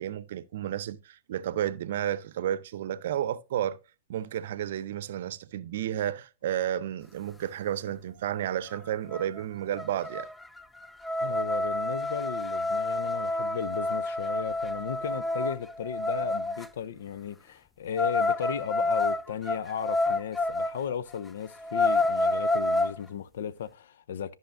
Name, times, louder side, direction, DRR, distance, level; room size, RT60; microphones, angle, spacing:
voice 1, 0.0-3.8 4.1-10.3, right 11 dB, 60° right, 0.6 m, -32 dB
sound 1, 8.7-8.8 9.1-9.4 9.8-16.7 18.0-20.8 21.2-21.3 21.6-23.0, left 2 dB, 10° left, 0.4 m, -28 dB
voice 2, 11.2-24.4, left 8 dB, 65° left, 0.6 m, -35 dB
13.5 x 5.6 x 2.6 m
hypercardioid pair, 115°, 0 cm